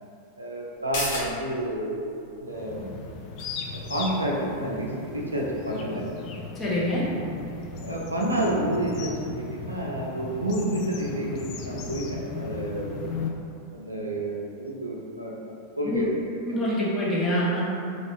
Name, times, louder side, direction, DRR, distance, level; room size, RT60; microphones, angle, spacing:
voice 1, 0.4-2.0 2.4-2.9 3.7-6.1 7.8-13.1 13.7-16.2, right 1 dB, 80° right, -2 dB, 0.4 m, -29 dB
sound 1, 0.7-7.9 8.2-8.3, left 2 dB, 55° left, 0.8 m, -40 dB
sound 2, 2.5-13.3, left 4 dB, 40° left, 0.3 m, -37 dB
voice 2, 6.6-7.1 15.8-16.0 16.5-17.6, equal, 20° left, -7 dB, 0.9 m, -25 dB
3.1 x 2.7 x 3.0 m, 2.6 s
figure-of-eight pair, 90°, 0 cm